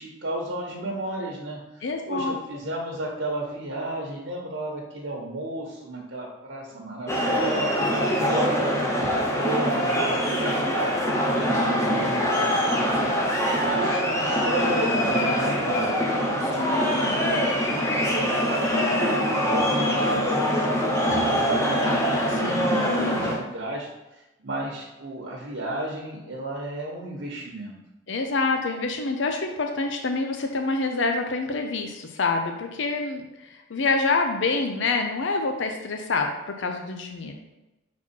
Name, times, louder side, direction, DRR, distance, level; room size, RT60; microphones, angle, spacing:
voice 1, 0.0-11.0 11.3-13.1 13.6-27.8, right 1 dB, 70° right, -2 dB, 1.1 m, -34 dB
voice 2, 1.8-2.3 16.6-17.2 22.4-23.4 28.1-37.3, left 3 dB, 65° left, 4 dB, 0.6 m, -27 dB
sound 1, 7.1-23.4, equal, 15° left, 0.9 m, -23 dB
5.9 x 4.2 x 4.4 m, 1.0 s
head